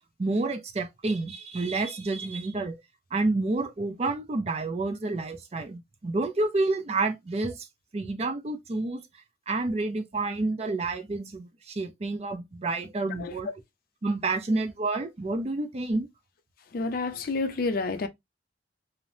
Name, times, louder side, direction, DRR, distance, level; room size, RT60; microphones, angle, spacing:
voice 1, 0.2-2.8 3.1-7.7 7.9-9.0 9.5-13.5 14.0-16.1, right 2 dB, 35° right, 0.4 m, -29 dB
voice 2, 13.2-13.5 16.7-18.1, left 3 dB, 50° left, 0.4 m, -29 dB
3.0 x 2.0 x 2.6 m
head